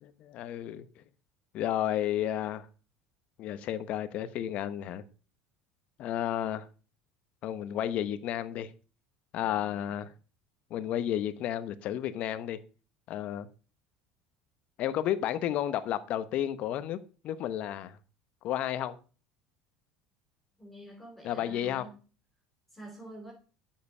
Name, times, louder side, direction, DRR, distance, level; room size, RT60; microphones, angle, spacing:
voice 1, 0.0-1.0 1.5-2.7 3.4-5.0 6.0-6.7 7.4-8.7 9.3-10.1 10.7-12.6 13.1-13.5 14.8-17.0 17.2-18.0 18.4-19.0 21.2-21.9, left 11 dB, 55° left, 1.0 m, -32 dB
voice 2, 20.6-21.9 22.7-23.3, equal, 10° left, 4.9 m, -48 dB
9.5 x 7.6 x 5.5 m
supercardioid pair, 115°, 3 cm